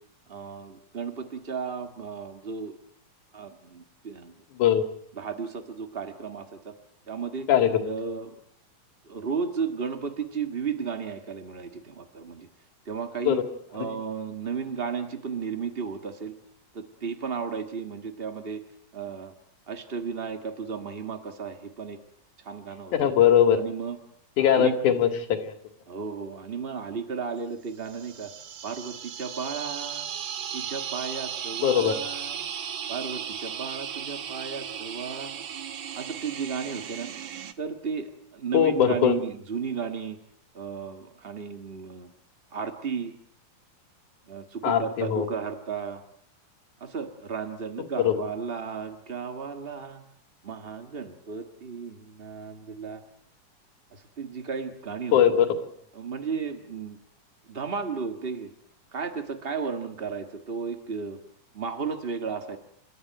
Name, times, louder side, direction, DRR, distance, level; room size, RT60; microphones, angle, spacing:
voice 1, 0.3-2.8 3.3-4.3 5.2-6.7 7.1-7.5 7.8-8.3 9.0-12.5 12.8-13.4 13.7-16.3 16.7-18.6 18.9-19.3 19.7-22.0 22.4-23.1 23.5-24.0 24.4-24.7 25.9-28.3 28.6-30.1 30.5-32.4 32.9-35.4 35.9-37.1 37.6-40.2 40.5-42.1 42.5-43.2 44.3-46.0 46.8-50.0 50.4-53.0 53.9-55.4 55.9-57.0 57.5-58.5 58.9-61.2 61.5-62.6, right 6 dB, 45° right, 6 dB, 0.7 m, -34 dB
voice 2, 4.5-4.8 7.5-7.7 13.2-13.4 22.9-23.6 24.4-25.5 31.6-31.9 38.5-39.1 44.6-45.2 48.0-48.1 55.1-55.5, left 9 dB, 65° left, 6 dB, 3.4 m, -20 dB
sound 1, 27.8-37.5, right 8 dB, 65° right, 1.2 m, -36 dB
29.5 x 14.0 x 9.2 m, 0.71 s
omnidirectional pair, 3.9 m